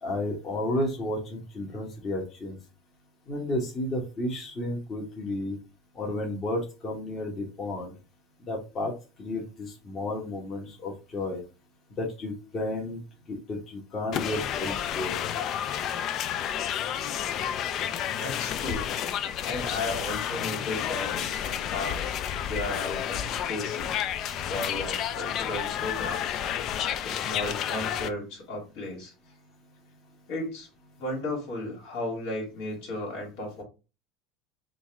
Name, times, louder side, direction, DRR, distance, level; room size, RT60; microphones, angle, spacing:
voice 1, 0.0-2.6 3.3-5.6 5.9-7.9 8.5-8.9 9.2-11.4 12.0-13.0 13.3-15.2, left 1 dB, 35° left, -2 dB, 1.2 m, -32 dB
sound 1, 14.1-28.1, left 9 dB, 50° left, 0.4 m, -31 dB
voice 2, 18.1-18.9 19.4-22.1 22.5-24.0 24.5-26.4 26.7-29.1 30.3-30.7 31.0-33.6, left 2 dB, 75° left, 0 dB, 2.0 m, -35 dB
3.9 x 2.4 x 3.4 m, 0.31 s
supercardioid pair, 115°, 0 cm